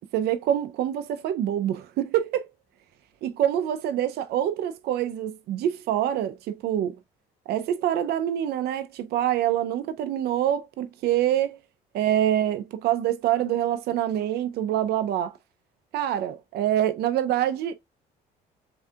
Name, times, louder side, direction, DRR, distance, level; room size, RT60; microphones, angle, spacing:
voice 1, 0.1-2.4 3.2-7.0 7.5-11.6 11.9-15.4 15.9-17.7, right 11 dB, 70° right, 0.6 m, -25 dB
7.0 x 2.8 x 2.3 m
cardioid pair, 110°, 17 cm